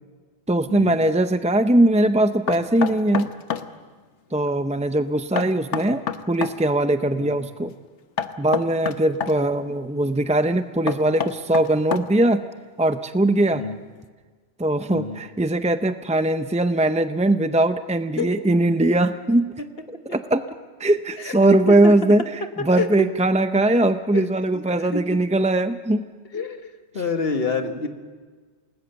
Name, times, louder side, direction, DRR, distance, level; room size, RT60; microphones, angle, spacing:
voice 1, 0.5-3.3 4.3-7.7 8.4-12.4 12.8-13.6 14.6-19.5 19.9-20.4 20.8-26.0, right 1 dB, 10° right, 9 dB, 0.3 m, -20 dB
Knock, 2.5-3.7 5.4-6.6 8.2-9.4 10.9-12.3, left 7 dB, 90° left, 1.3 m, -28 dB
voice 2, 24.5-25.0 26.3-26.6 26.9-27.9, left 4 dB, 60° left, 6 dB, 1.8 m, -27 dB
28.5 x 19.5 x 6.9 m, 1.5 s
omnidirectional pair, 1.2 m